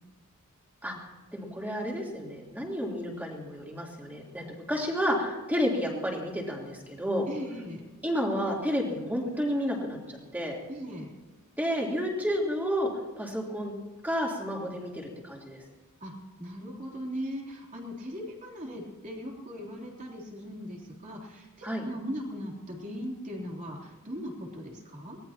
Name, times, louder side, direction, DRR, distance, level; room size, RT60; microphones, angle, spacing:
voice 1, 1.3-7.3 8.0-10.0 10.3-10.6 11.6-12.9 13.2-13.7 14.0-15.6 21.6-21.8, equal, 10° right, -2 dB, 3.5 m, -31 dB
voice 2, 7.3-7.8 10.7-11.1 16.0-16.1 16.4-25.2, equal, 35° right, -1 dB, 3.5 m, -39 dB
23.5 x 18.5 x 3.0 m, 1.3 s
head